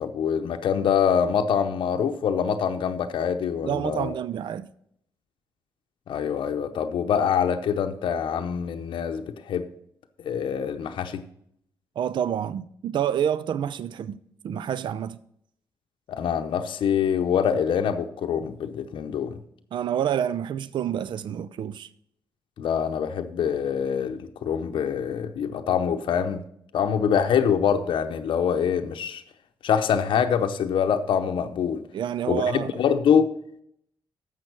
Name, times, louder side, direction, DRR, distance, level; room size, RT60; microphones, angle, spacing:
voice 1, 0.0-4.1 6.1-9.7 10.2-11.2 16.1-19.4 22.6-26.4 26.7-29.2 29.6-31.8 32.3-33.3, left 7 dB, 70° left, 0.7 m, -25 dB
voice 2, 3.6-4.7 12.0-14.2 14.4-15.2 19.7-21.9 31.9-32.8, right 9 dB, 65° right, 0.4 m, -28 dB
7.5 x 6.1 x 7.7 m
cardioid pair, 70°, 9 cm